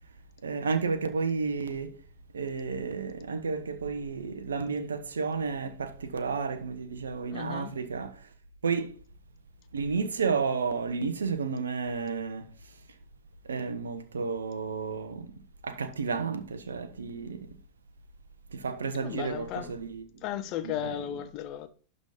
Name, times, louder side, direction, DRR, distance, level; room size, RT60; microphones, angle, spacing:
voice 1, 0.4-1.9 2.3-8.2 8.6-9.0 9.7-12.5 13.5-15.3 15.6-17.4 18.5-20.1 20.6-21.2, right 5 dB, 70° right, 1.2 m, -32 dB
voice 2, 7.3-7.7 19.0-19.7 20.2-21.7, left 11 dB, 40° left, 1.0 m, -35 dB
11.5 x 4.1 x 5.1 m
figure-of-eight pair, 90°, 0 cm